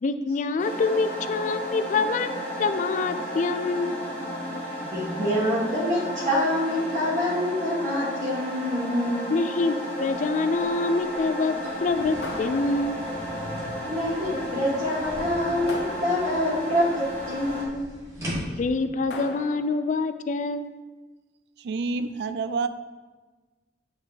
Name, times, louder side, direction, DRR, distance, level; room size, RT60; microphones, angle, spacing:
voice 1, 0.0-4.1 9.3-11.5 11.8-13.0 18.6-20.7, left 3 dB, 45° left, 11 dB, 0.3 m, -26 dB
sound 1, 0.6-17.7, equal, 10° left, 1.2 m, -33 dB
voice 2, 4.8-9.4 13.8-18.0 18.4-18.6, left 1 dB, 45° right, -9 dB, 1.5 m, -26 dB
sound 2, 10.5-18.9, equal, 20° right, 1.3 m, -40 dB
sound 3, 12.2-13.3 15.7-16.7 19.1-20.0, left 2 dB, 80° left, 0.8 m, -39 dB
voice 3, 21.6-22.7, right 4 dB, 65° right, 12 dB, 0.3 m, -28 dB
8.7 x 4.0 x 3.2 m, 1.3 s
head